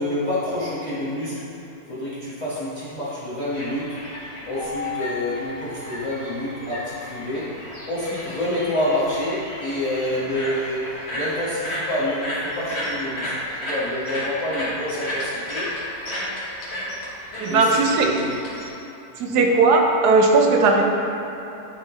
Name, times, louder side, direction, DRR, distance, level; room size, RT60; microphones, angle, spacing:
voice 1, 0.0-1.5 1.9-4.0 4.5-7.6 7.9-15.7 17.5-18.4 19.3-19.5, left 1 dB, 25° left, -11 dB, 1.1 m, -28 dB
sound 1, 3.5-18.7, equal, 45° left, 1.5 m, -33 dB
Keyboard (musical), 4.5-7.2, left 4 dB, 65° left, 1.9 m, -36 dB
voice 2, 17.4-18.1 19.2-20.8, right 3 dB, 85° right, 1 dB, 1.3 m, -17 dB
10.5 x 3.7 x 3.0 m, 3.0 s
omnidirectional pair, 1.7 m